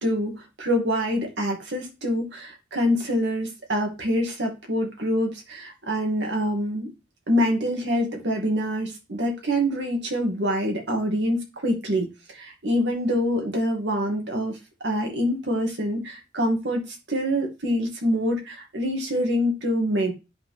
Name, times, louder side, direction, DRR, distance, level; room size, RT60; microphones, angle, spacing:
voice 1, 0.0-6.9 7.3-20.1, equal, 70° right, 2.3 m, -25 dB
8.8 x 5.7 x 3.5 m
head